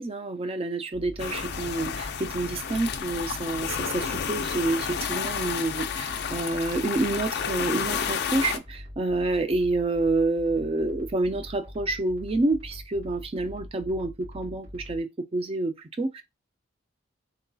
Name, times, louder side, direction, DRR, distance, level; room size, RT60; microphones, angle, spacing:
voice 1, 0.0-16.2, right 2 dB, 30° right, 0.3 m, -28 dB
sound 1, 0.9-15.0, left 1 dB, 70° right, 2.4 m, -43 dB
sound 2, 1.2-8.6, left 7 dB, 50° left, 0.4 m, -31 dB
3.9 x 2.6 x 2.2 m
head